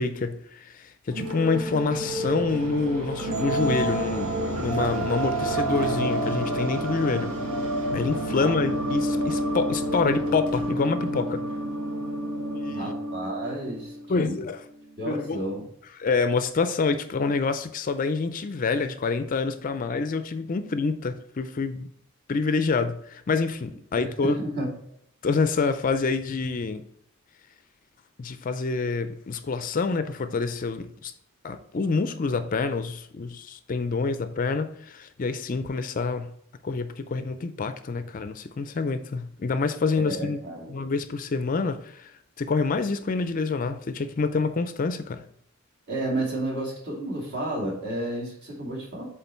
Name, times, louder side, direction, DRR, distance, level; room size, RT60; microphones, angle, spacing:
voice 1, 0.0-7.4 7.9-11.5 12.5-13.0 14.1-14.6 15.1-15.4 16.0-21.9 22.3-24.4 25.2-26.8 28.2-31.1 31.4-36.3 36.6-40.4 40.7-45.2, left 4 dB, 40° left, 0.4 m, -27 dB
sound 1, 1.1-14.0, right 1 dB, 90° right, 1.6 m, -29 dB
voice 2, 12.7-14.4 15.0-15.6 24.0-24.7 40.1-40.9 45.9-49.1, right 1 dB, 50° right, 2.3 m, -31 dB
8.1 x 3.8 x 4.3 m
head